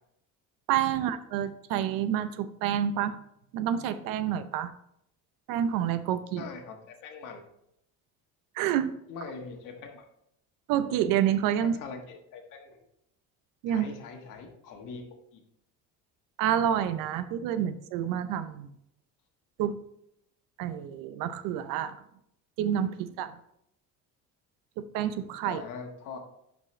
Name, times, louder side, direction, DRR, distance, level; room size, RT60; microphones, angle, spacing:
voice 1, 0.7-3.2 3.5-4.7 5.5-6.5 8.6-9.0 10.7-11.8 13.6-13.9 16.4-18.7 19.6-19.8 20.6-22.0 22.6-23.3 24.8-25.6, right 10 dB, 85° right, 12 dB, 0.7 m, -28 dB
voice 2, 6.4-7.4 9.1-10.0 11.6-12.8 13.7-15.0 15.3-15.4 25.4-26.2, left 5 dB, 70° left, 3 dB, 1.6 m, -42 dB
11.0 x 5.2 x 3.2 m, 0.76 s
cardioid pair, 145°, 33 cm